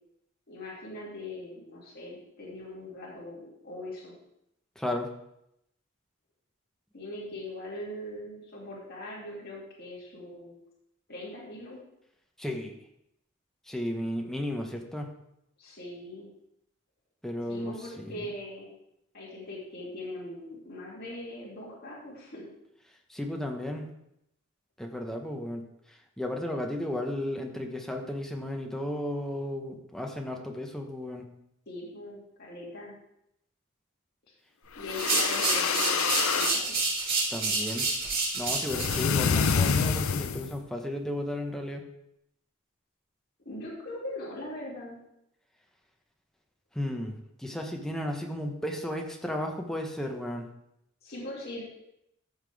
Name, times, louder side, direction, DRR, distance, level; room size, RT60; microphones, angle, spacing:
voice 1, 0.5-4.1 6.9-10.6 11.1-11.8 15.6-16.3 17.5-18.7 19.1-22.4 31.7-32.9 34.8-36.8 43.4-45.0 51.0-51.6, left 1 dB, 50° left, -7 dB, 2.8 m, -41 dB
voice 2, 4.8-5.1 12.4-12.7 13.7-15.1 17.2-18.3 23.1-23.9 24.8-31.3 37.3-37.9 38.3-41.9 46.7-50.5, left 1 dB, ahead, 2 dB, 1.1 m, -34 dB
sound 1, 34.8-36.6 38.7-40.6, left 6 dB, 85° left, 0.6 m, -27 dB
sound 2, 34.9-39.0, right 3 dB, 45° right, 3.0 m, -29 dB
14.5 x 5.9 x 3.5 m, 0.80 s
head